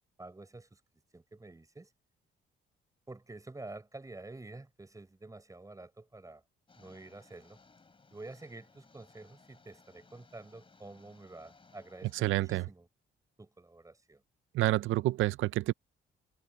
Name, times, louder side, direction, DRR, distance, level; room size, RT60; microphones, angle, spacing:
voice 1, 0.2-0.8 1.1-1.9 3.1-6.4 6.7-7.6 8.1-12.9 13.4-14.2, right 2 dB, 15° right, 5.0 m, -49 dB
sound 1, 6.7-12.3, left 4 dB, 25° left, 3.4 m, -62 dB
voice 2, 12.0-12.7 14.5-15.7, right 16 dB, 80° right, 0.6 m, -29 dB
cardioid pair, 90°, 20 cm